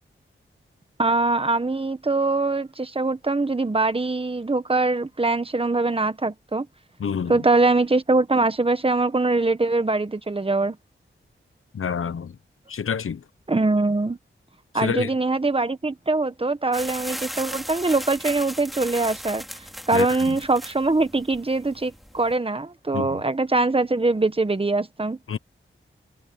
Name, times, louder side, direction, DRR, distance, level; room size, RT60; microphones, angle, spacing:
voice 1, 1.0-6.7 7.3-10.8 13.5-14.2 14.7-19.4 19.9-25.2, right 3 dB, 25° right, 1.4 m, -23 dB
voice 2, 7.0-7.4 11.7-12.3 12.7-13.2 14.7-15.1 19.9-20.4 22.9-23.2 25.3-25.4, left 7 dB, 85° left, 1.1 m, -28 dB
sound 1, 16.7-22.3, equal, ahead, 2.4 m, -37 dB
wide cardioid pair, 80°, 21 cm